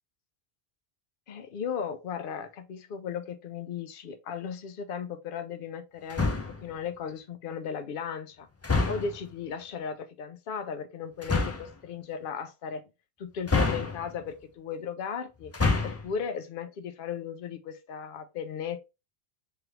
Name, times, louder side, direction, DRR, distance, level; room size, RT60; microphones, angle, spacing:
voice 1, 1.3-8.5 8.9-12.8 13.2-15.5 15.8-18.8, left 7 dB, 60° left, 0.7 m, -36 dB
sound 1, 6.1-6.7 8.6-9.3 11.2-11.7 13.5-14.3 15.4-16.1, left 3 dB, 25° left, 0.3 m, -27 dB
3.5 x 3.2 x 2.9 m
omnidirectional pair, 1.1 m